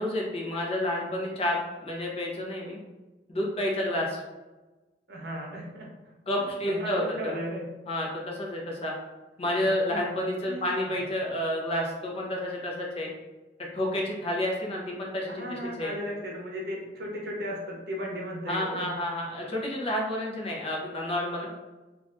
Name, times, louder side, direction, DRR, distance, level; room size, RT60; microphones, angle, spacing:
voice 1, 0.0-2.8 3.3-4.2 6.3-7.3 7.9-8.9 9.4-13.1 13.7-15.9 18.5-21.5, left 1 dB, 35° left, -2 dB, 0.6 m, -30 dB
voice 2, 5.1-5.9 6.7-7.6 9.6-10.0 10.4-11.0 15.3-18.9, equal, 65° right, -2 dB, 0.7 m, -36 dB
3.3 x 2.4 x 2.5 m, 1.1 s
head